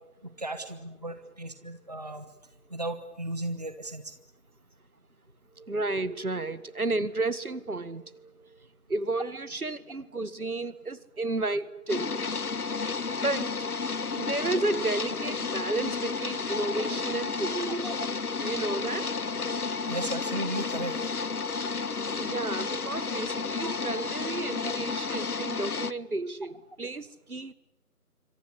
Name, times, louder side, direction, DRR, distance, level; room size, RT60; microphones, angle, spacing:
voice 1, 0.4-2.2 2.7-4.1 17.8-17.9 19.9-20.9 23.6-23.8 24.6-24.7, right 1 dB, 25° right, 10 dB, 1.3 m, -35 dB
voice 2, 5.6-12.3 13.2-13.7 14.2-17.9 18.4-19.1 22.2-27.5, right 2 dB, 70° right, 15 dB, 2.0 m, -32 dB
sound 1, 11.9-25.9, left 4 dB, 70° left, 1.1 m, -32 dB
26.5 x 26.0 x 8.4 m, 0.90 s
figure-of-eight pair, 170°, 46 cm